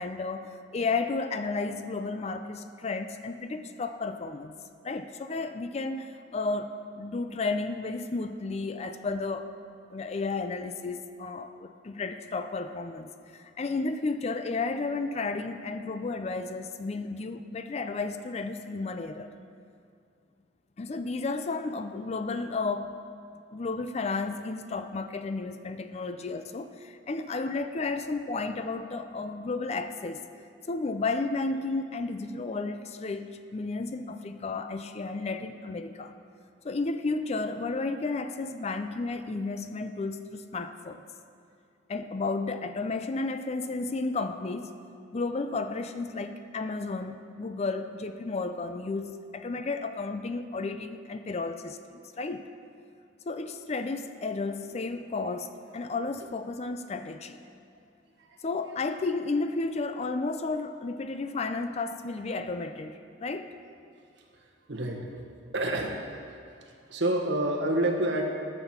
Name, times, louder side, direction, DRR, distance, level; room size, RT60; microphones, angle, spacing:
voice 1, 0.0-4.6 4.8-9.5 9.9-19.3 20.8-23.0 23.5-30.2 30.7-36.1 36.6-41.0 41.9-44.7 45.1-52.5 53.3-57.4 58.4-63.5, left 3 dB, 35° left, 9 dB, 0.4 m, -32 dB
voice 2, 64.7-65.2 65.5-66.0 66.9-68.2, right 1 dB, 65° right, 1 dB, 1.4 m, -28 dB
11.5 x 6.1 x 7.2 m, 2.3 s
head